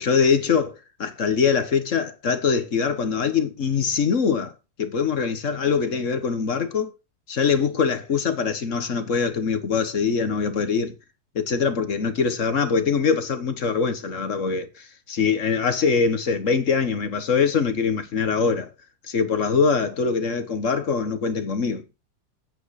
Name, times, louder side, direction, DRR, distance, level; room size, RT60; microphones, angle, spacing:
voice 1, 0.0-4.5 4.8-6.9 7.3-10.9 11.3-18.7 19.0-21.8, left 5 dB, 50° left, 1.5 m, -23 dB
9.2 x 8.7 x 4.8 m
omnidirectional pair, 1.7 m